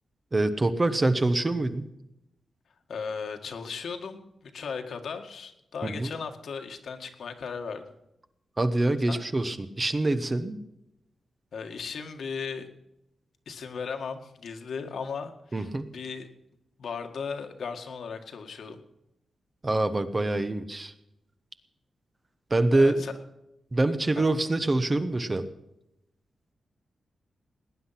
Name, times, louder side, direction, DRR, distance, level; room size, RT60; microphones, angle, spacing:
voice 1, 0.3-1.9 5.8-6.1 8.6-10.6 15.5-15.9 19.6-20.9 22.5-23.0 23.7-25.5, right 2 dB, 20° right, 10 dB, 1.0 m, -25 dB
voice 2, 2.9-4.3 4.5-7.8 9.1-9.2 11.5-12.7 13.5-15.7 15.9-16.3 16.8-18.8 22.7-23.1 24.2-24.3, left 5 dB, 70° left, 5 dB, 1.8 m, -36 dB
18.5 x 10.0 x 5.8 m, 0.85 s
wide cardioid pair, 140°, 0 cm